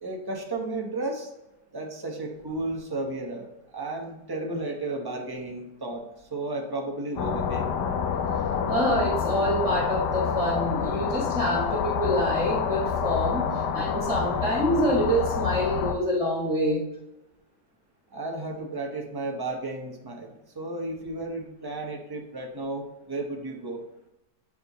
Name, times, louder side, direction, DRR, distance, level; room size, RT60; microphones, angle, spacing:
voice 1, 0.0-1.3 1.7-7.7 18.1-23.8, right 2 dB, 20° right, 1 dB, 0.6 m, -33 dB
sound 1, 7.2-15.9, left 7 dB, 75° left, 1.3 m, -28 dB
voice 2, 8.7-13.5 13.7-16.8, equal, 5° right, -6 dB, 1.3 m, -26 dB
8.8 x 3.6 x 4.0 m, 0.90 s
omnidirectional pair, 1.9 m